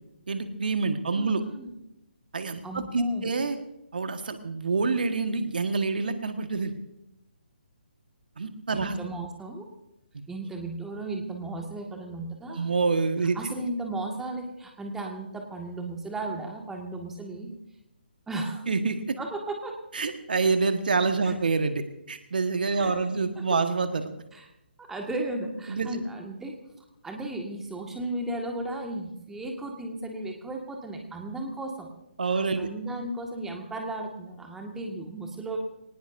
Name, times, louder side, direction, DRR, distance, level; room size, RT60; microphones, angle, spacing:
voice 1, 0.3-1.4 2.3-3.6 3.9-6.7 8.4-9.0 12.5-13.4 18.7-19.2 19.9-24.1 25.7-25.9 32.2-32.7, right 4 dB, 60° right, 7 dB, 1.5 m, -27 dB
voice 2, 1.1-1.7 2.6-3.3 8.7-9.7 10.3-12.7 13.3-17.5 18.3-18.7 19.2-19.8 21.2-21.3 22.7-22.9 23.5-23.6 24.3-24.5 24.8-26.5 27.0-31.9 32.2-35.6, right 2 dB, 5° right, 2 dB, 1.8 m, -35 dB
23.0 x 19.0 x 2.7 m, 0.86 s
figure-of-eight pair, 140°, 6 cm